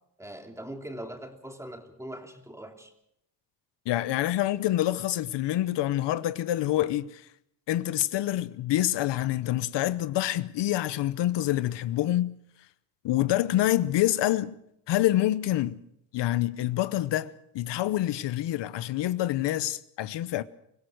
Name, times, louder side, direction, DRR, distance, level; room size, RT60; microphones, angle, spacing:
voice 1, 0.2-2.9, right 1 dB, 5° right, 3.1 m, -41 dB
voice 2, 3.9-7.3 7.7-12.4 13.0-14.5 14.9-15.8 16.1-20.4, left 14 dB, 75° left, 0.9 m, -27 dB
25.0 x 16.5 x 6.5 m
cardioid pair, 100°, 42 cm